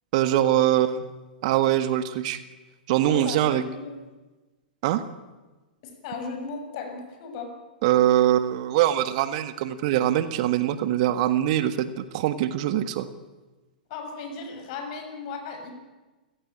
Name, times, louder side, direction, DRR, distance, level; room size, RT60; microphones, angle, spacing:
voice 1, 0.1-1.0 1.4-2.4 2.9-3.6 4.8-5.1 7.8-13.0, right 12 dB, 50° right, 12 dB, 1.7 m, -23 dB
voice 2, 3.1-3.9 5.8-7.5 13.9-15.7, left 4 dB, 45° left, 5 dB, 7.0 m, -36 dB
29.5 x 16.5 x 8.8 m, 1.2 s
figure-of-eight pair, 105°, 5 cm